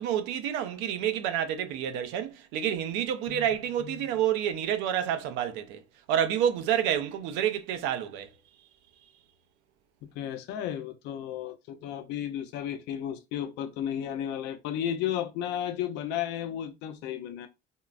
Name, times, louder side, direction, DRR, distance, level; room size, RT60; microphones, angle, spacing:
voice 1, 0.0-5.8 6.1-8.3, right 10 dB, 85° right, 0.5 m, -29 dB
voice 2, 10.1-17.5, left 10 dB, 70° left, 0.6 m, -33 dB
3.6 x 2.0 x 2.4 m
cardioid pair, 120°, 18 cm